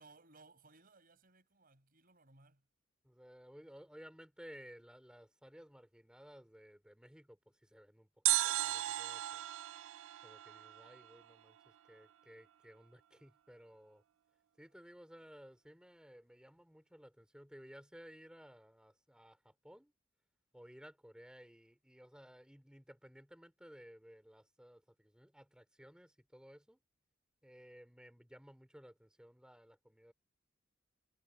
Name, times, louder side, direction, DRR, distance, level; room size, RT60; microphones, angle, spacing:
voice 1, 0.0-2.6, right 3 dB, 50° right, 6.4 m, -63 dB
voice 2, 3.0-9.4 10.2-14.0 14.6-19.9 20.5-26.8 27.4-30.1, equal, 5° right, 3.0 m, -57 dB
sound 1, 8.3-11.3 11.6-11.7, right 16 dB, 75° right, 0.4 m, -36 dB
head